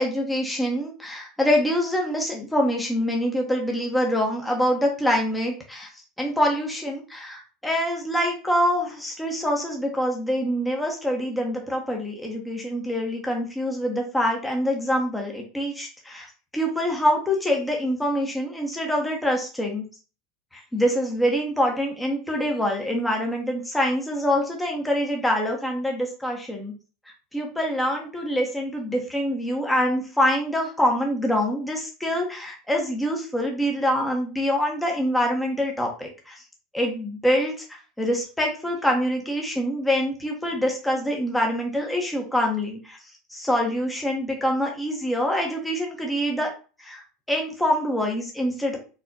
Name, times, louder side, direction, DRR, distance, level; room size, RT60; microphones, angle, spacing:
voice 1, 0.0-5.9 6.2-16.3 16.5-19.8 20.5-26.7 27.3-36.4 36.7-43.0 43.3-46.5 46.8-47.0 47.3-48.8, equal, 5° left, 0 dB, 1.3 m, -25 dB
4.2 x 4.1 x 2.9 m, 0.35 s
hypercardioid pair, 80°, 0 cm